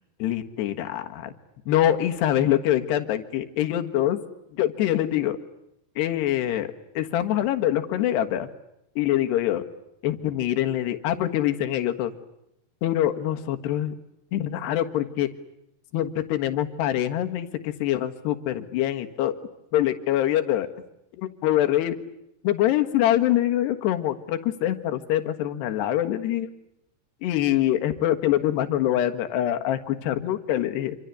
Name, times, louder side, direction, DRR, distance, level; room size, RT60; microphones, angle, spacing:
voice 1, 0.2-1.3 1.7-4.2 4.5-5.4 6.0-6.7 7.0-8.5 9.0-9.6 10.0-12.1 12.8-13.9 14.3-15.3 15.9-19.4 19.7-20.7 21.2-22.0 22.4-26.5 27.2-31.0, left 12 dB, 80° left, 7 dB, 3.6 m, -24 dB
27.5 x 26.0 x 8.3 m, 0.82 s
omnidirectional pair, 4.8 m